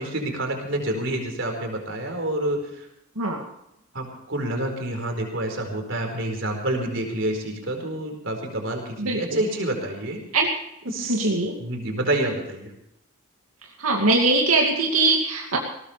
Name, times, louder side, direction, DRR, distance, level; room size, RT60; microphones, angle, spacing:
voice 1, 0.0-2.9 3.9-10.2 10.8-11.2 11.6-12.7, right 1 dB, 55° right, 3 dB, 4.7 m, -28 dB
voice 2, 9.0-9.4 10.3-10.5 11.1-11.6 13.8-15.6, right 3 dB, 90° right, -1 dB, 2.5 m, -21 dB
20.5 x 18.0 x 3.4 m, 0.81 s
head